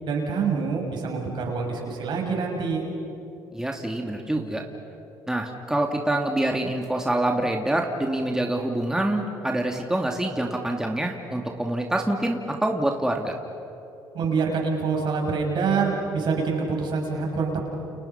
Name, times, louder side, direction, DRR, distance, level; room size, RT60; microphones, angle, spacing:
voice 1, 0.0-2.9 14.1-17.7, right 5 dB, 65° right, 0 dB, 6.7 m, -26 dB
voice 2, 3.5-4.6 5.3-13.3, right 1 dB, 5° right, 1 dB, 2.6 m, -26 dB
30.0 x 29.5 x 5.9 m, 2.9 s
supercardioid pair, 75°, 9 cm